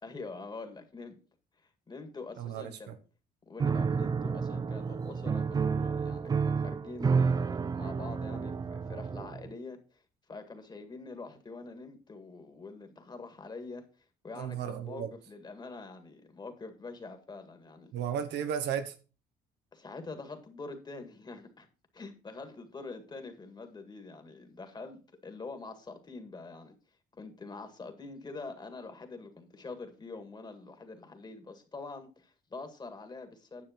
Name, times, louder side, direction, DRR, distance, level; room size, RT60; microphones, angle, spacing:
voice 1, 0.0-1.2 1.9-3.0 3.5-10.0 10.3-13.9 14.2-17.9 19.7-21.7 21.9-26.8 27.2-33.6, left 3 dB, 25° left, 1.9 m, -45 dB
voice 2, 2.4-2.9 14.4-15.1 17.9-18.9, right 8 dB, 80° right, 1.4 m, -34 dB
Piano, 3.6-9.5, right 5 dB, 25° right, 0.4 m, -30 dB
9.9 x 7.0 x 4.4 m
cardioid pair, 110°, 17 cm